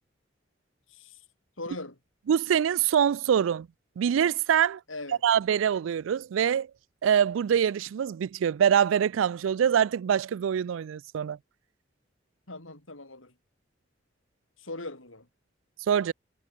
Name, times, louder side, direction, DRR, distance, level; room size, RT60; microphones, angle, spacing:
voice 1, 0.9-1.2 1.6-2.0 4.9-5.2 12.5-13.3 14.6-15.3, left 2 dB, 90° left, 7.7 m, -40 dB
voice 2, 2.3-3.7 4.0-4.8 5.2-6.7 7.0-11.4 15.9-16.1, right 8 dB, 80° right, 0.3 m, -24 dB
head